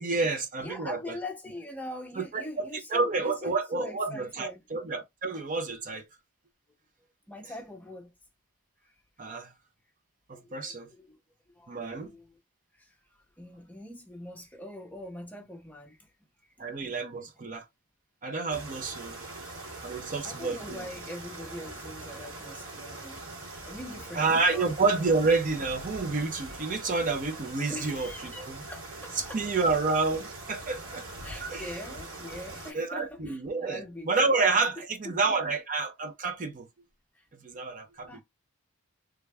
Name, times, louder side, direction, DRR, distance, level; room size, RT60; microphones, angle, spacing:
voice 1, 0.0-1.0 2.2-2.7 2.9-6.1 9.2-9.5 10.3-10.9 11.7-12.1 16.6-17.7 18.2-19.2 19.8-20.8 24.2-28.6 29.2-31.1 31.4-31.7 32.7-36.7 37.4-38.1, right 3 dB, 35° right, 0.6 m, -29 dB
voice 2, 0.6-4.6 7.3-8.1 8.8-8.9 9.2-9.3 10.3-10.7 11.1-11.2 11.5-12.4 12.7-13.0 13.4-16.1 16.6-17.0 17.4-17.5 18.5-18.9 19.3-19.4 20.2-24.7 27.7-29.5 31.2-34.4 34.8-35.5 37.1-37.3 38.1-38.2, left 1 dB, 5° left, 0.7 m, -43 dB
sound 1, 18.5-32.7, right 2 dB, 70° right, 2.1 m, -42 dB
3.4 x 2.2 x 3.3 m
head